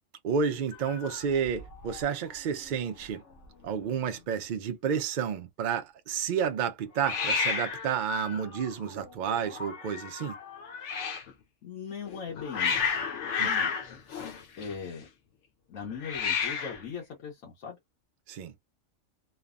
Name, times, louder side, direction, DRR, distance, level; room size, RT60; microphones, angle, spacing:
voice 1, 0.2-3.2 3.6-10.4 13.4-13.5 18.3-18.5, right 7 dB, 70° right, 0.4 m, -31 dB
Hiss, 0.7-2.1 2.3-2.8 3.0-3.1 3.3-4.0 7.0-11.3 12.1-15.0 15.9-16.9, left 6 dB, 70° left, 0.9 m, -33 dB
voice 2, 11.6-12.9 13.4-13.7 14.6-15.1 15.7-17.8, left 6 dB, 85° left, 1.3 m, -39 dB
3.2 x 2.0 x 2.4 m
omnidirectional pair, 1.4 m